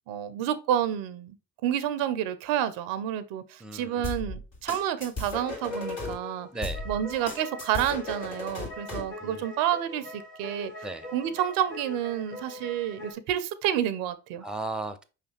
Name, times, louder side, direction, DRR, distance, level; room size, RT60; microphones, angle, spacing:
voice 1, 0.1-1.4 1.6-6.5 6.9-10.7 11.1-14.4, right 10 dB, 85° right, 0.5 m, -29 dB
voice 2, 3.6-4.0 6.5-6.8 9.2-9.4 10.8-11.1 14.4-15.0, right 2 dB, ahead, 0.6 m, -35 dB
sound 1, 4.0-6.1 6.6-9.1, left 2 dB, 65° left, 2.0 m, -36 dB
sound 2, 5.5-13.1, left 2 dB, 85° left, 1.7 m, -41 dB
5.2 x 3.2 x 2.9 m
supercardioid pair, 60°, 35 cm